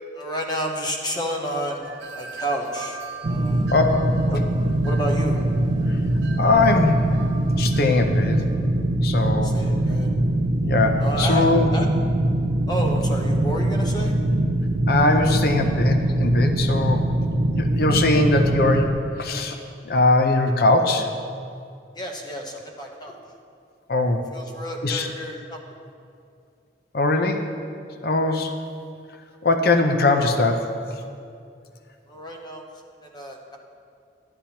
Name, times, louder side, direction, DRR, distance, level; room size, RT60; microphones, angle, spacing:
voice 1, 0.1-3.0 3.2-3.7 4.3-4.4 4.8-5.4 9.4-10.1 11.0-11.9 12.7-14.2 21.9-23.2 24.3-25.6 32.1-32.7 33.0-33.6, right 1 dB, 20° left, 1 dB, 0.8 m, -30 dB
Wind chime, 1.8-8.5, right 4 dB, 85° right, 1.1 m, -41 dB
sound 1, 3.2-18.9, right 1 dB, 55° right, 0.4 m, -22 dB
voice 2, 6.4-7.0 7.6-8.4 9.0-9.5 10.6-11.7 14.9-17.0 17.6-18.9 19.2-19.6 19.8-21.1 23.9-24.2 24.8-25.1 26.9-27.4 28.0-28.5 29.4-30.6, left 2 dB, 55° left, 5 dB, 0.5 m, -20 dB
11.5 x 8.8 x 2.9 m, 2.4 s
head